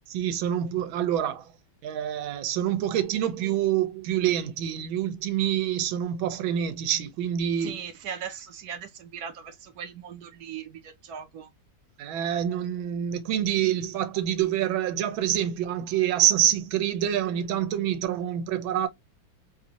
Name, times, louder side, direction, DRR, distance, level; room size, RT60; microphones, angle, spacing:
voice 1, 0.1-1.5 1.8-7.8 12.0-18.9, right 10 dB, 90° right, 1.4 m, -26 dB
voice 2, 7.6-11.5, right 8 dB, 65° right, 1.0 m, -39 dB
3.3 x 2.5 x 2.8 m
omnidirectional pair, 2.1 m